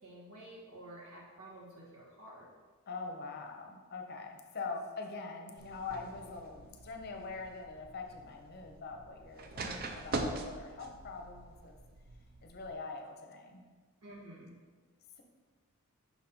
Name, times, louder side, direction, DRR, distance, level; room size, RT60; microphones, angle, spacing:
voice 1, 0.0-2.5 14.0-14.6, right 1 dB, 80° right, -5 dB, 1.9 m, -51 dB
voice 2, 2.9-11.8 12.4-13.6, left 4 dB, 45° left, 3 dB, 0.6 m, -43 dB
sound 1, 5.6-12.7, right 2 dB, 45° right, 0.5 m, -43 dB
5.8 x 4.1 x 4.3 m, 1.5 s
head